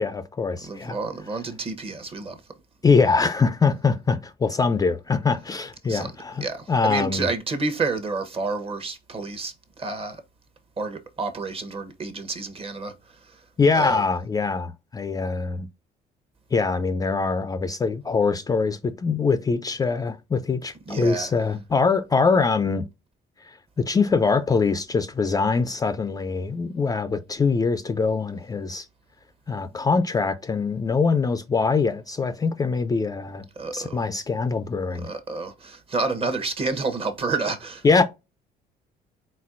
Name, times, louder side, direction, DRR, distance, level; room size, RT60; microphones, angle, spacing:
voice 1, 0.0-1.0 2.8-7.3 13.6-15.7 16.5-22.9 23.4-28.9 29.5-33.4 33.7-35.1 37.8-38.0, left 4 dB, 20° left, 0.4 m, -23 dB
voice 2, 0.7-2.4 5.9-6.1 6.4-10.2 10.8-12.9 13.7-14.0 20.9-21.3 33.6-34.0 35.0-37.8, right 3 dB, 35° right, 0.9 m, -29 dB
4.2 x 3.9 x 2.5 m
cardioid pair, 110°, 17 cm